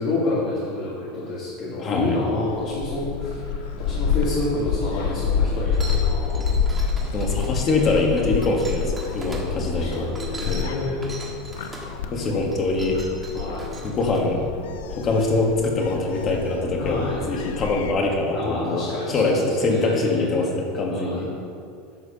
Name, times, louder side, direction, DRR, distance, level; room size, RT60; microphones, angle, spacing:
voice 1, 0.0-6.5 9.4-11.1 13.3-13.7 16.8-17.3 18.3-20.3 20.9-21.3, left 2 dB, 45° left, -6 dB, 2.3 m, -29 dB
voice 2, 1.8-2.2 7.1-10.1 10.5-10.7 12.1-13.0 13.8-14.5 14.9-21.3, left 2 dB, 30° left, 1 dB, 1.6 m, -23 dB
Gull seagull, 2.5-17.9, left 6 dB, 90° left, 0.7 m, -28 dB
sound 1, 5.7-9.4 9.9-11.9 12.4-14.2, right 2 dB, 15° right, 1.4 m, -40 dB
11.5 x 4.8 x 6.8 m, 2.4 s
supercardioid pair, 155°, 0 cm